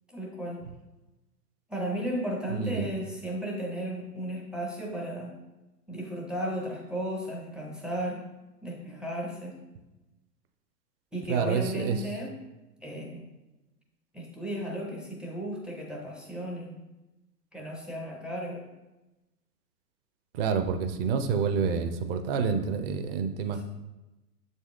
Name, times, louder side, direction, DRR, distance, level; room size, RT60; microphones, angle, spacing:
voice 1, 0.1-0.7 1.7-5.4 5.9-8.3 8.6-9.6 11.1-12.3 12.8-13.3 14.1-16.8 17.5-18.7 23.5-23.6, equal, ahead, -1 dB, 0.5 m, -34 dB
voice 2, 2.5-2.9 11.3-12.0 20.3-23.6, right 6 dB, 35° right, 8 dB, 0.7 m, -28 dB
7.2 x 4.1 x 3.6 m, 1.0 s
figure-of-eight pair, 110°, 49 cm